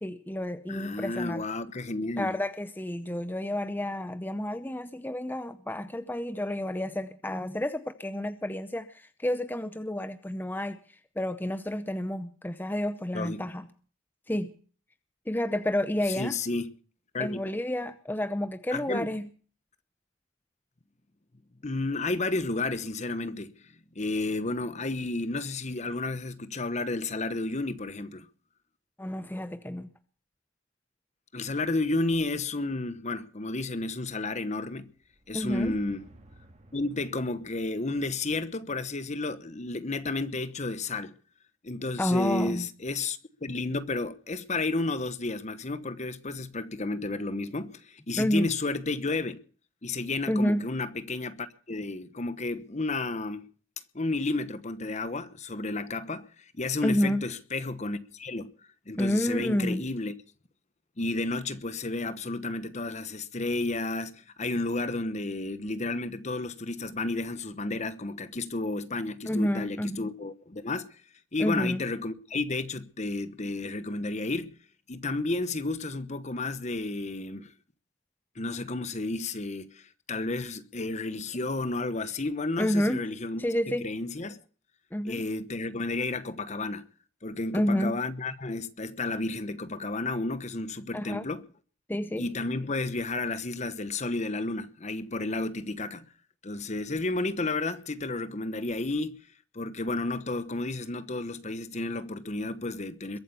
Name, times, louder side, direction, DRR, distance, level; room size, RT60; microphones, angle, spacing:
voice 1, 0.0-1.4 2.2-10.8 11.2-13.7 14.3-14.5 15.3-16.3 17.2-19.2 29.0-29.9 35.3-35.7 42.0-42.7 48.2-48.5 50.3-50.7 56.8-57.2 59.0-59.9 69.3-70.1 71.4-71.8 82.6-83.0 83.4-83.8 84.9-85.2 87.5-88.0 90.9-91.2 91.9-92.3, left 1 dB, 10° left, 0.7 m, -29 dB
voice 2, 0.7-2.3 13.1-13.4 16.1-16.7 17.1-17.4 18.7-19.1 21.6-23.5 23.9-28.3 31.3-34.9 35.3-36.1 36.7-41.1 41.6-49.4 49.8-53.5 53.9-56.3 56.5-58.5 58.9-60.1 61.0-70.9 71.3-74.5 74.9-77.5 78.4-84.4 85.0-86.8 87.2-91.4 92.2-96.1 96.4-99.2 99.5-103.2, left 2 dB, 35° left, 1.1 m, -32 dB
sound 1, 34.9-39.9, right 1 dB, 35° right, 2.3 m, -56 dB
22.0 x 8.6 x 6.9 m
head